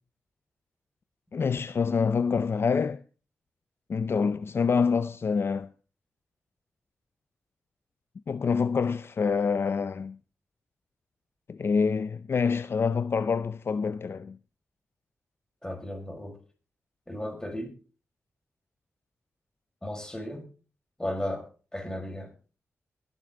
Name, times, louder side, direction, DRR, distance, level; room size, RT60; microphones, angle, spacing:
voice 1, 1.3-3.0 3.9-5.7 8.3-10.2 11.5-14.4, left 5 dB, 55° left, 0.6 m, -26 dB
voice 2, 15.6-16.4 17.1-17.8 19.8-20.4 21.0-21.5 21.7-22.3, left 1 dB, 10° left, 5.6 m, -34 dB
21.5 x 8.1 x 3.8 m
wide cardioid pair, 90°, 5 cm